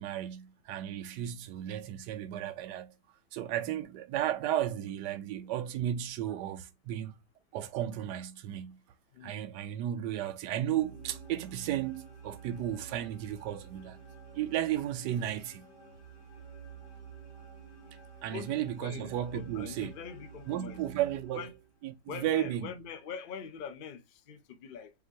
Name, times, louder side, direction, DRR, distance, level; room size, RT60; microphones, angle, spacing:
voice 1, 0.0-2.9 3.3-7.2 7.5-8.8 9.2-14.0 14.3-15.7 18.2-19.9 20.5-21.5 21.8-22.7, right 11 dB, 75° right, 1.2 m, -34 dB
sound 1, 10.5-21.8, right 6 dB, 20° left, 0.8 m, -51 dB
voice 2, 18.3-20.8 21.3-21.6 22.1-24.9, left 7 dB, 75° left, 0.4 m, -43 dB
4.8 x 2.9 x 2.4 m
omnidirectional pair, 1.9 m